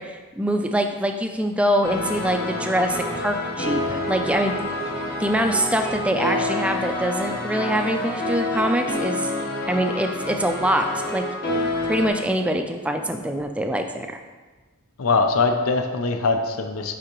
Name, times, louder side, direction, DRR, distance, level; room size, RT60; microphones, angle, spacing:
voice 1, 0.0-4.5 5.2-9.3 9.7-11.3 11.8-14.1, equal, 5° right, 5 dB, 0.3 m, -24 dB
sound 1, 1.8-12.1, left 1 dB, 45° left, 1.4 m, -28 dB
voice 2, 15.0-17.0, left 4 dB, 80° left, 6 dB, 0.6 m, -22 dB
9.8 x 3.7 x 3.0 m, 1.3 s
head